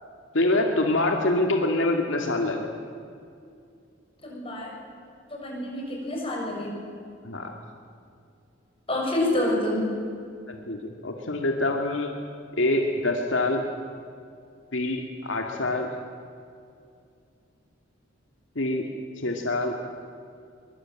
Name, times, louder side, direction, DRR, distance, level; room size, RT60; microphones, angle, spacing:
voice 1, 0.3-2.7 7.2-7.5 10.5-12.1 12.5-13.6 14.7-15.9 18.6-18.9 19.2-19.8, left 2 dB, 75° left, 2 dB, 2.3 m, -25 dB
voice 2, 4.2-4.7 5.3-6.7 8.9-9.8, left 1 dB, 30° left, -2 dB, 7.2 m, -27 dB
24.0 x 22.5 x 9.0 m, 2.4 s
head